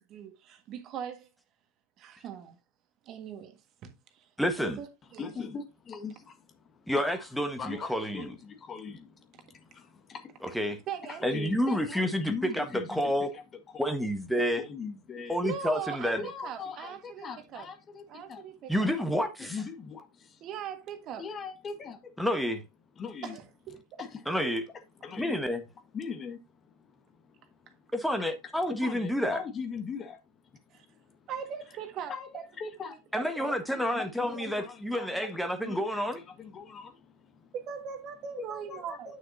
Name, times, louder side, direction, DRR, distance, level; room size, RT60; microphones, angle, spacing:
voice 1, 0.1-1.3 2.0-2.6 3.0-4.3 4.6-5.3 10.9-11.4 15.4-17.7 18.1-18.9 20.4-21.2 23.2-24.0 30.7-30.8 31.3-32.4 33.4-33.5 34.4-34.5 37.5-39.1, right 8 dB, 40° right, 1.5 m, -40 dB
voice 2, 4.4-4.8 6.9-8.3 10.5-10.8 11.2-13.3 13.8-14.6 15.3-16.2 18.7-19.5 22.2-22.6 24.3-24.6 25.2-25.6 27.9-29.4 33.1-36.2, equal, ahead, 1.3 m, -29 dB
voice 3, 5.2-7.3 7.6-10.6 11.1-14.1 14.6-15.4 16.1-18.5 18.9-20.4 21.2-22.2 23.0-23.4 24.0-25.4 25.9-27.9 28.7-31.3 32.1-32.3 32.6-33.3 33.7-37.5 38.5-39.2, left 5 dB, 25° left, 1.5 m, -42 dB
9.7 x 6.2 x 2.6 m
figure-of-eight pair, 90°, 0 cm